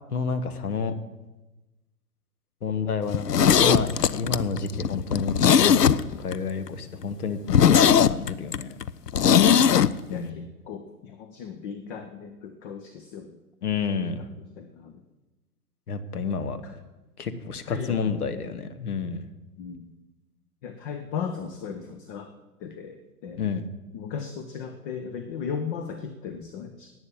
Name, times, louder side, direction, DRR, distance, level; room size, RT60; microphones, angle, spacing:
voice 1, 0.1-0.9 2.6-5.9 6.2-7.4 7.7-8.7 10.1-10.5 13.6-14.3 15.9-16.6 17.2-19.3 23.4-23.6, left 5 dB, 70° left, 10 dB, 1.4 m, -29 dB
Zipper (clothing), 3.1-6.4 6.7-6.8 7.1-7.2 7.5-9.9 10.2-10.3, left 8 dB, 85° left, 0.6 m, -19 dB
voice 2, 10.1-13.4 14.2-14.3 14.6-15.0 17.6-18.1 19.6-19.9 20.6-22.3 22.6-23.4 23.9-26.9, left 6 dB, 35° left, 8 dB, 1.0 m, -36 dB
11.0 x 8.9 x 8.6 m, 1.1 s
figure-of-eight pair, 115°, 47 cm